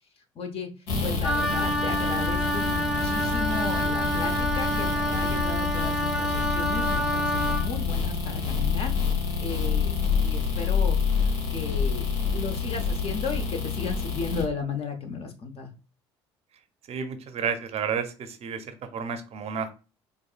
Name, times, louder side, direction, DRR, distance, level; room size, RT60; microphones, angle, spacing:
voice 1, 0.3-0.7 1.0-9.0 9.4-11.0 11.5-15.7, left 4 dB, 45° left, 5 dB, 0.9 m, -35 dB
sound 1, 0.9-14.4, left 5 dB, 75° left, 1.1 m, -27 dB
Wind instrument woodwind instrument, 1.2-7.7, equal, 5° right, 0.4 m, -28 dB
voice 2, 16.9-19.7, right 6 dB, 45° right, 8 dB, 0.6 m, -31 dB
4.5 x 2.6 x 2.3 m, 0.33 s
hypercardioid pair, 60°, 14 cm